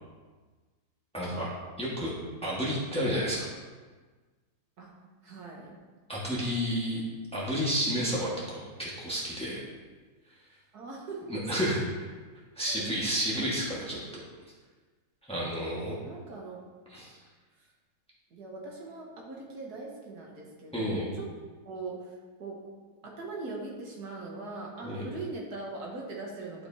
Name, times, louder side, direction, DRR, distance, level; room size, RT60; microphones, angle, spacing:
voice 1, 1.1-1.5 1.8-2.1 2.4-3.4 6.1-7.0 7.3-9.6 11.3-12.1 12.5-14.2 15.2-15.9 16.9-17.2 20.7-21.1 24.8-25.1, equal, 5° left, -6 dB, 1.5 m, -31 dB
voice 2, 5.2-5.7 10.7-11.4 12.6-12.9 15.8-16.6 17.5-17.7 18.3-21.3 21.6-22.6 23.0-26.7, right 3 dB, 70° right, -2 dB, 1.8 m, -41 dB
11.5 x 5.0 x 2.8 m, 1.4 s
omnidirectional pair, 1.7 m